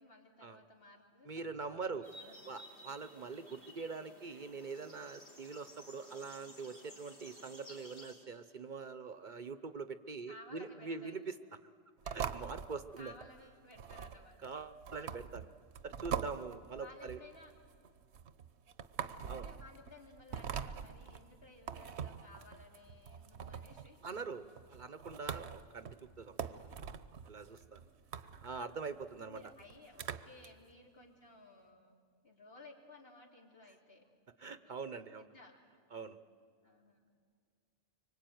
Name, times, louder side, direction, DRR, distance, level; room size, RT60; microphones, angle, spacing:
voice 1, 0.0-2.5 3.4-3.8 10.3-11.2 12.0-12.3 13.0-14.5 16.7-17.5 19.0-24.0 27.8-27.9 28.2-28.3 29.2-34.0 34.4-34.6 35.2-35.5 36.6-37.1, left 2 dB, 65° left, 1 dB, 3.4 m, -57 dB
voice 2, 1.2-2.1 2.5-11.4 12.1-13.2 14.4-15.5 15.8-17.2 19.3-19.5 24.0-25.9 26.2-26.4 27.2-27.8 28.4-29.4 34.4-35.3 35.9-36.2, right 4 dB, 50° right, 12 dB, 0.9 m, -44 dB
sound 1, 2.0-8.1, left 1 dB, 80° left, 4.8 m, -56 dB
sound 2, 12.0-30.5, right 7 dB, 80° right, 1.1 m, -44 dB
25.0 x 24.5 x 9.3 m, 2.1 s
omnidirectional pair, 1.1 m